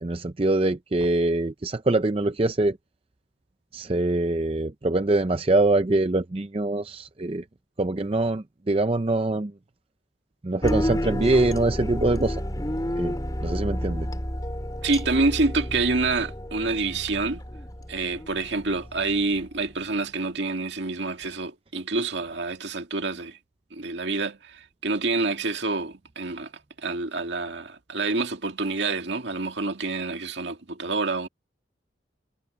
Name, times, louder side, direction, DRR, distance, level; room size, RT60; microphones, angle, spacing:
voice 1, 0.0-2.8 3.7-7.4 7.8-9.5 10.4-12.4 13.0-13.1 13.4-14.1, right 2 dB, 30° right, 0.5 m, -24 dB
sound 1, 10.6-19.8, equal, 20° left, 4.6 m, -31 dB
voice 2, 14.8-17.4 17.9-23.4 23.7-26.5 26.8-31.3, right 3 dB, 70° right, 2.1 m, -27 dB
head